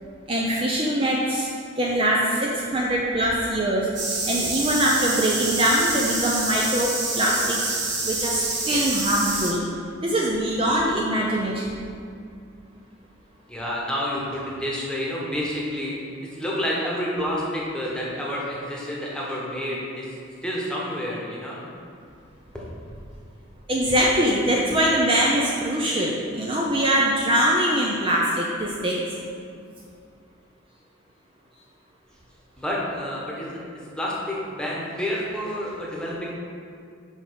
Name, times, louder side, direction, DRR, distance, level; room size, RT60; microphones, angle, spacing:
voice 1, 0.3-1.5 1.8-3.9 4.2-7.7 8.0-9.6 10.0-11.8 23.7-29.0, right 1 dB, 25° right, -3 dB, 0.5 m, -23 dB
sound 1, 4.0-9.5, right 3 dB, 60° right, 1.4 m, -27 dB
voice 2, 13.5-20.1 20.4-21.6 22.5-22.6 32.6-33.6 34.0-36.3, equal, 5° left, -5 dB, 1.2 m, -29 dB
5.3 x 5.0 x 6.3 m, 2.3 s
head